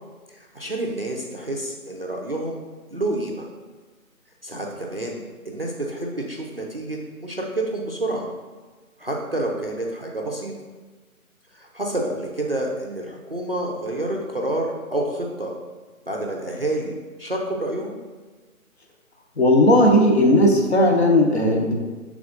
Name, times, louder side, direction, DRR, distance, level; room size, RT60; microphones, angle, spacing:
voice 1, 0.3-2.6 2.9-3.5 4.4-8.3 9.0-10.5 11.5-15.5 16.1-18.0, right 1 dB, 45° right, -1 dB, 0.4 m, -28 dB
voice 2, 19.4-21.7, left 1 dB, 50° left, 1 dB, 0.7 m, -16 dB
6.2 x 3.5 x 2.5 m, 1.3 s
figure-of-eight pair, 160°, 43 cm